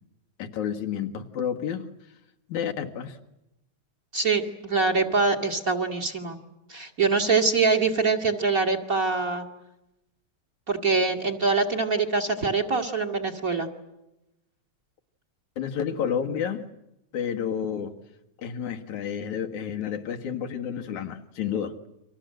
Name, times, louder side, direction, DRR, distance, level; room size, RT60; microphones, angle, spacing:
voice 1, 0.4-1.9 2.5-3.2 15.6-16.7 17.1-17.9 18.4-21.8, left 8 dB, 75° left, 4 dB, 3.0 m, -30 dB
voice 2, 4.1-6.4 6.7-9.5 10.7-13.7, right 4 dB, 30° right, 9 dB, 2.5 m, -24 dB
30.0 x 25.5 x 7.8 m, 0.91 s
omnidirectional pair, 3.4 m